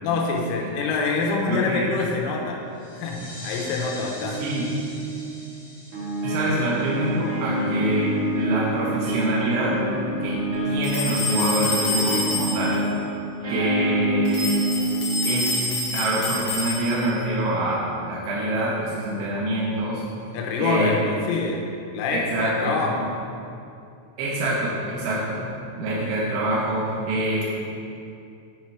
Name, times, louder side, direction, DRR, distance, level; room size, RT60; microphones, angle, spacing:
voice 1, 0.0-2.6 2.9-3.2 3.4-4.4 20.3-23.0, left 4 dB, 85° left, 0 dB, 3.3 m, -25 dB
voice 2, 1.5-1.9 3.2-3.3 4.4-4.7 6.2-9.8 10.2-10.4 10.6-12.8 13.5-14.5 15.2-17.8 18.1-20.0 20.6-21.0 22.1-23.0 24.2-25.5 25.8-27.4, right 1 dB, 80° right, -6 dB, 3.3 m, -25 dB
sound 1, 2.7-8.0, left 1 dB, 50° left, 1.6 m, -43 dB
sound 2, 4.2-5.4 5.9-15.5, right 1 dB, 50° right, 1.7 m, -27 dB
sound 3, 10.8-12.8 14.3-17.2, left 2 dB, 65° left, 3.5 m, -28 dB
9.4 x 4.5 x 4.6 m, 2.5 s
omnidirectional pair, 5.7 m